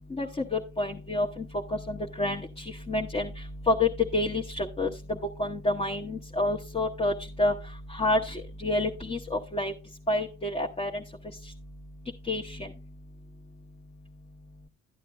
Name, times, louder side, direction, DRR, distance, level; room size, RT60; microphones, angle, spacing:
voice 1, 0.1-1.5 1.7-3.3 3.7-7.1 7.4-7.5 7.9-9.7 10.1-11.0 12.3-12.7, left 2 dB, 20° left, 0 dB, 0.9 m, -28 dB
12.5 x 9.0 x 2.3 m, 0.33 s
cardioid pair, 90°, 30 cm